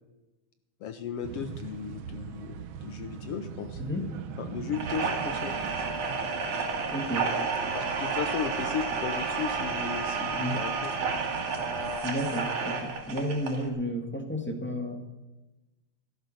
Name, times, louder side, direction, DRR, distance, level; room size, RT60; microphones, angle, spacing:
voice 1, 0.8-3.8 4.4-5.6 7.7-10.9, left 8 dB, 70° left, 9 dB, 1.5 m, -36 dB
sound 1, 1.2-12.0, right 7 dB, 70° right, 1.2 m, -42 dB
voice 2, 3.8-4.1 6.9-7.3 10.3-10.6 12.0-15.0, equal, 5° left, 4 dB, 1.0 m, -32 dB
sound 2, 4.7-13.7, right 4 dB, 90° right, 3.6 m, -31 dB
16.0 x 13.5 x 6.4 m, 1.1 s
omnidirectional pair, 3.3 m